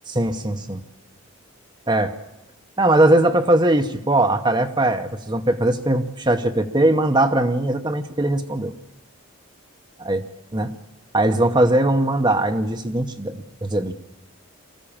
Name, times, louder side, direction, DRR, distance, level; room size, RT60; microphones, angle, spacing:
voice 1, 0.1-0.8 1.9-2.1 2.8-8.7 10.0-10.2 10.5-10.7 11.1-13.9, right 1 dB, 20° right, 7 dB, 0.9 m, -20 dB
24.0 x 14.5 x 8.7 m, 0.93 s
head